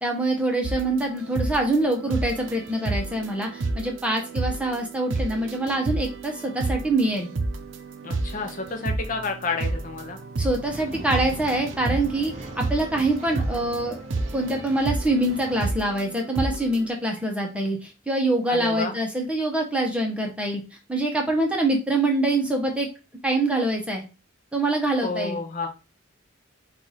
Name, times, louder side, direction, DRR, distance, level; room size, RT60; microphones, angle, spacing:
voice 1, 0.0-7.3 10.4-14.0 14.3-20.6 20.9-22.9 23.2-24.0 24.5-25.4, right 2 dB, 5° right, 1 dB, 0.8 m, -25 dB
sound 1, 0.6-16.9, right 2 dB, 65° right, 0.6 m, -31 dB
voice 2, 8.0-10.2 18.5-19.0 25.0-25.7, left 4 dB, 40° left, 4 dB, 0.6 m, -30 dB
Male speech man speaking / Chatter / Rattle, 10.7-15.6, right 1 dB, 30° right, 0.8 m, -40 dB
4.6 x 2.4 x 4.0 m, 0.31 s
head